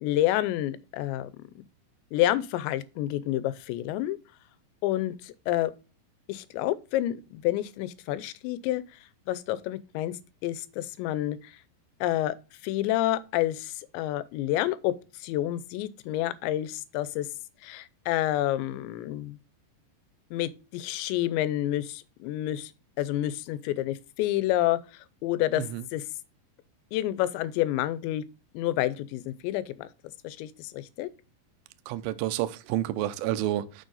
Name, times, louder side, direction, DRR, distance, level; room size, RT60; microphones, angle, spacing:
voice 1, 0.0-1.4 2.1-4.2 4.8-5.7 6.3-8.8 9.3-10.1 10.4-11.5 12.0-12.4 12.6-17.3 17.6-19.4 20.3-22.7 23.0-24.8 25.2-25.6 25.9-26.0 26.9-28.2 28.5-29.9 30.2-31.1, left 14 dB, 85° left, 2.9 m, -29 dB
voice 2, 31.9-33.8, right 13 dB, 85° right, 2.1 m, -30 dB
6.7 x 6.4 x 3.9 m
omnidirectional pair, 5.1 m